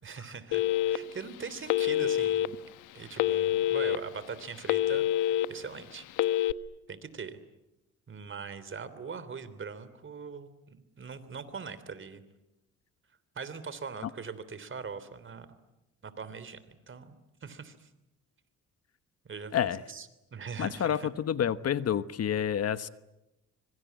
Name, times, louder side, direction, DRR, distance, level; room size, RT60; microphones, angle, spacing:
voice 1, 0.0-2.6 2.9-6.1 6.9-7.4 8.1-12.2 13.3-15.5 16.0-17.9 19.2-20.1 20.3-21.1, right 5 dB, 40° right, 14 dB, 3.2 m, -41 dB
Telephone, 0.5-1.2 1.7-2.5 3.2-4.0 4.4-5.5 6.1-6.5, left 13 dB, 90° left, 1.1 m, -26 dB
voice 2, 20.6-22.9, left 9 dB, 55° left, 13 dB, 1.2 m, -29 dB
25.5 x 24.0 x 9.5 m, 0.93 s
cardioid pair, 90°, 30 cm